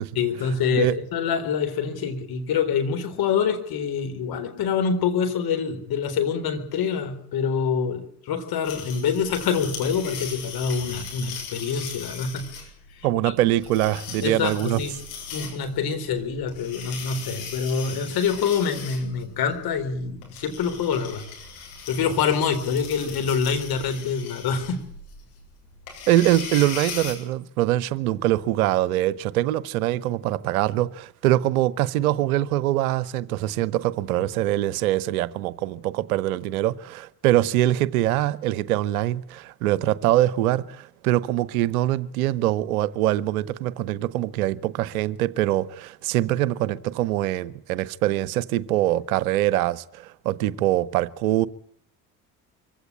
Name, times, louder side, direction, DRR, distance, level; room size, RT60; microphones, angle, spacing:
voice 1, 0.2-12.5 14.2-14.9 15.3-21.2 21.9-24.8, left 6 dB, 50° left, 4.2 m, -26 dB
sound 1, 8.6-27.1, left 6 dB, 70° left, 7.6 m, -39 dB
voice 2, 13.0-14.8 26.1-51.5, right 14 dB, 65° right, 0.9 m, -23 dB
24.0 x 16.5 x 8.8 m
figure-of-eight pair, 55°, 46 cm